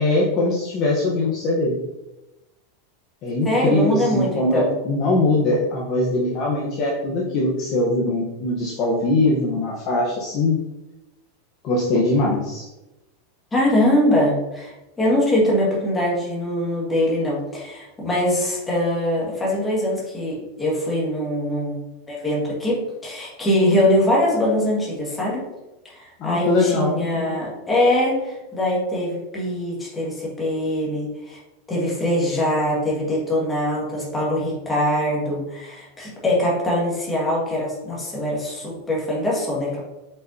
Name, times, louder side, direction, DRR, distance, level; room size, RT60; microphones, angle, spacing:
voice 1, 0.0-1.8 3.2-10.6 11.6-12.7 26.2-27.0, left 2 dB, 30° left, -4 dB, 1.0 m, -21 dB
voice 2, 3.4-4.7 13.5-21.8 22.1-25.4 25.9-31.4 31.7-39.8, left 1 dB, 10° left, -5 dB, 1.8 m, -22 dB
8.1 x 5.5 x 2.8 m, 0.99 s
supercardioid pair, 180°, 0 cm